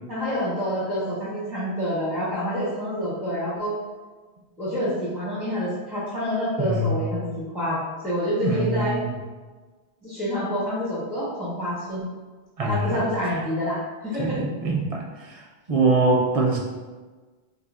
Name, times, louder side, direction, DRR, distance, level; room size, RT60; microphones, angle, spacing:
voice 1, 0.1-3.7 4.6-7.8 8.0-9.0 10.0-12.0 12.7-14.4, equal, ahead, -9 dB, 0.6 m, -27 dB
voice 2, 6.6-7.0 8.4-9.2 12.6-13.0 14.2-15.4 15.7-16.6, right 2 dB, 45° right, -1 dB, 0.5 m, -23 dB
2.6 x 2.4 x 4.0 m, 1.3 s
omnidirectional pair, 1.0 m